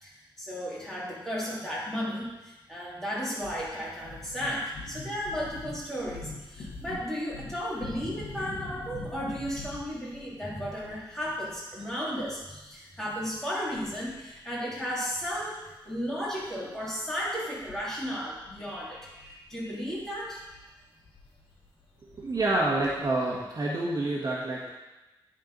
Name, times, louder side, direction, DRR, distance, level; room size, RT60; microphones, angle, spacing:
voice 1, 0.0-20.4, equal, 5° left, -8 dB, 3.0 m, -34 dB
sound 1, 3.4-14.5 14.7-14.9 15.2-23.0, left 3 dB, 75° left, 1.6 m, -45 dB
voice 2, 22.0-24.7, right 2 dB, 45° right, -4 dB, 1.5 m, -28 dB
10.5 x 4.5 x 4.0 m, 1.0 s
cardioid pair, 90°, 9 cm